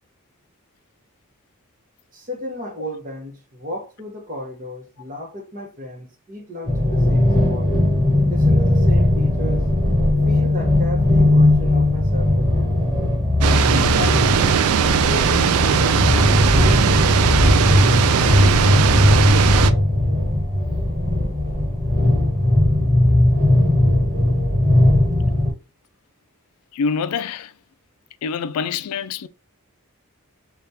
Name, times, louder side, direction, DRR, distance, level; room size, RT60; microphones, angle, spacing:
voice 1, 2.1-7.7 8.3-9.6 10.2-12.7 13.7-18.4, left 1 dB, 40° right, 0.9 m, -34 dB
sound 1, 6.6-25.5, left 1 dB, 20° right, 1.4 m, -18 dB
sound 2, 13.4-19.7, right 8 dB, 75° right, 0.3 m, -19 dB
voice 2, 26.7-27.5 28.2-29.3, left 5 dB, 85° left, 0.3 m, -25 dB
3.4 x 2.4 x 2.7 m
head